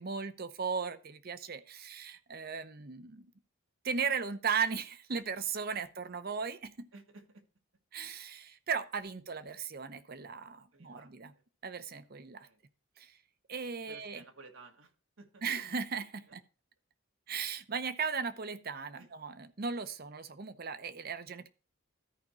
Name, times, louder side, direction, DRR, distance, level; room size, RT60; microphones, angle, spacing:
voice 1, 0.0-3.3 3.8-6.9 7.9-11.3 11.6-12.5 13.0-13.2 13.5-14.2 15.4-16.4 17.3-21.5, right 6 dB, 50° right, 0.8 m, -37 dB
voice 2, 6.9-7.5 10.7-11.4 12.4-12.6 13.9-14.9 15.2-15.4 16.3-16.4 19.0-19.1, right 3 dB, 85° right, 1.6 m, -55 dB
13.5 x 5.1 x 4.3 m
head